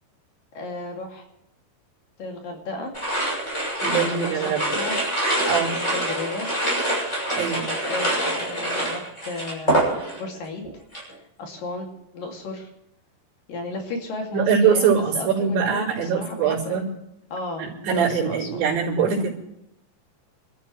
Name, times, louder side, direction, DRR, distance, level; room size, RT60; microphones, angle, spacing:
voice 1, 0.5-1.2 2.2-2.9 3.9-5.2 5.7-6.5 7.8-9.9 10.2-11.9 12.1-12.7 13.5-16.8 17.3-18.6 19.0-19.2, left 3 dB, 55° left, 1 dB, 4.0 m, -34 dB
sound 1, 2.9-10.4 10.6-11.1, right 1 dB, 15° left, 6.7 m, -25 dB
voice 2, 3.8-4.6 5.5-5.7 7.4-7.7 14.3-16.8 17.6-19.3, right 7 dB, 75° right, -12 dB, 6.3 m, -22 dB
28.0 x 13.5 x 3.3 m, 0.83 s
omnidirectional pair, 5.2 m